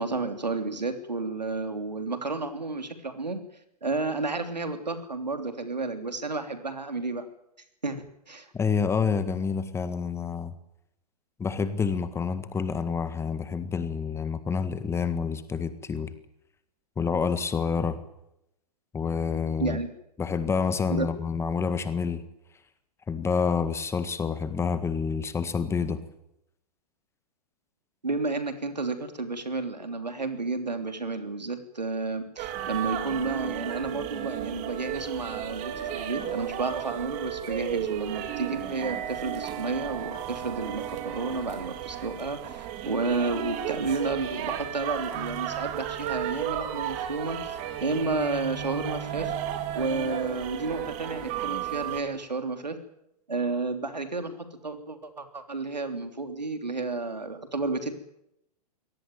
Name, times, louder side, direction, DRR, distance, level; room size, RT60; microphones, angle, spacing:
voice 1, 0.0-3.4 3.8-7.3 7.8-8.5 19.6-19.9 20.9-21.1 28.0-49.3 49.7-52.8 53.3-57.9, right 3 dB, 80° right, 8 dB, 3.2 m, -31 dB
voice 2, 8.5-10.5 11.4-16.1 17.0-18.0 18.9-19.8 20.2-22.2 23.1-26.0, left 5 dB, 10° left, 12 dB, 1.7 m, -28 dB
sound 1, 32.4-52.0, right 11 dB, 35° right, 3.3 m, -34 dB
23.5 x 18.0 x 9.2 m, 0.83 s
figure-of-eight pair, 110°, 21 cm